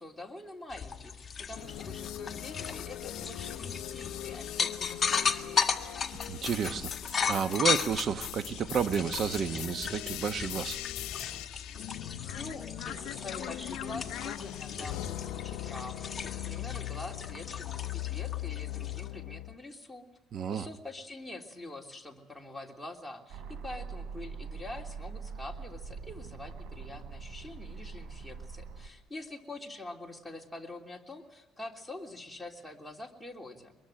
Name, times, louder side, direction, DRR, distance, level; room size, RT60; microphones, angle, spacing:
voice 1, 0.0-5.8 12.3-20.1 20.5-33.8, left 2 dB, 5° left, 0 dB, 3.2 m, -45 dB
sound 1, 0.7-19.1, left 5 dB, 30° left, 1.7 m, -36 dB
sound 2, 1.5-19.5, left 15 dB, 90° left, 0.8 m, -40 dB
voice 2, 6.3-6.9 7.3-10.8 20.3-20.7, right 7 dB, 50° right, 11 dB, 1.2 m, -31 dB
sound 3, 23.3-28.9, right 5 dB, 80° right, 3.3 m, -43 dB
23.5 x 22.0 x 9.0 m, 0.99 s
cardioid pair, 115°, 0 cm